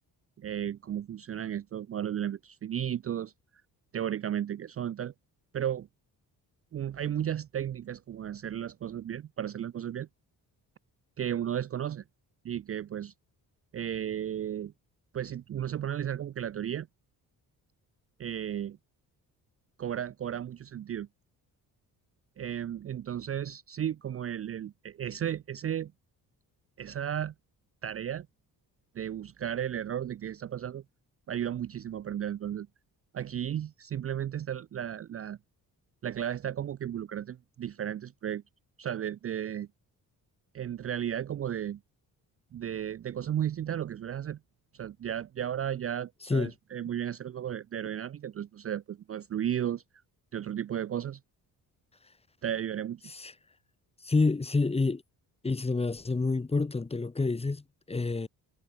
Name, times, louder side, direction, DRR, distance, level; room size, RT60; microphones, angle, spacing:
voice 1, 0.4-3.3 3.9-5.1 5.5-5.9 6.7-10.1 11.2-12.0 12.4-13.1 13.7-14.7 15.1-16.9 18.2-18.8 19.8-21.1 22.4-25.9 26.8-27.3 27.8-28.3 28.9-30.8 31.3-32.7 33.1-35.4 36.0-38.4 38.8-39.7 40.5-41.8 42.5-44.4 44.7-49.8 50.3-51.2 52.4-53.0, right 10 dB, 40° right, 0.5 m, -34 dB
voice 2, 54.0-55.0 55.4-58.3, left 3 dB, 15° left, 1.2 m, -28 dB
cardioid pair, 130°, 38 cm